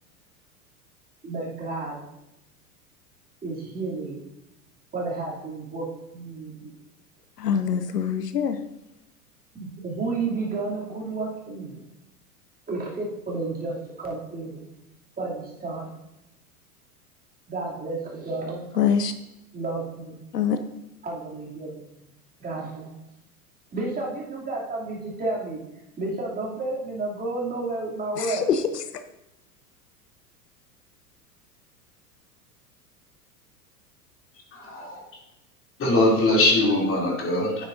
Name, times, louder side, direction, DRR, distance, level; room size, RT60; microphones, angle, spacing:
voice 1, 1.2-2.0 3.4-4.2 4.9-5.9 6.1-6.7 9.5-11.8 12.7-14.6 15.2-15.9 17.5-18.7 19.5-20.2 21.0-21.8 22.4-23.0 23.7-25.6 26.0-28.4, right 3 dB, 20° right, -5 dB, 2.9 m, -31 dB
voice 2, 7.4-8.6 18.8-19.1 20.3-20.6 28.2-29.0, left 7 dB, 80° left, 10 dB, 0.7 m, -24 dB
voice 3, 34.5-35.0 35.8-37.7, left 2 dB, 25° left, -2 dB, 3.1 m, -22 dB
10.0 x 9.4 x 2.7 m, 0.88 s
figure-of-eight pair, 90°, 47 cm